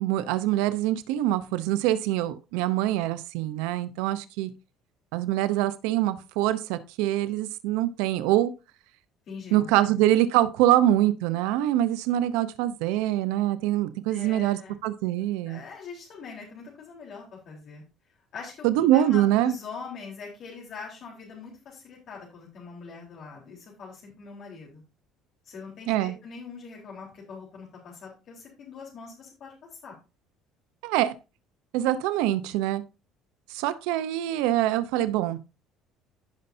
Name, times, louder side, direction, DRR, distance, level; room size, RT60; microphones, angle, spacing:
voice 1, 0.0-4.5 5.1-8.5 9.5-15.6 18.6-19.5 25.9-26.1 30.8-31.2 31.7-32.8 33.5-35.4, right 13 dB, 90° right, 0.8 m, -24 dB
voice 2, 9.3-9.7 14.1-14.8 15.5-17.8 18.3-24.8 25.4-29.5 29.8-29.9, left 5 dB, 55° left, 3.9 m, -42 dB
16.0 x 5.6 x 2.7 m
cardioid pair, 115°, 0 cm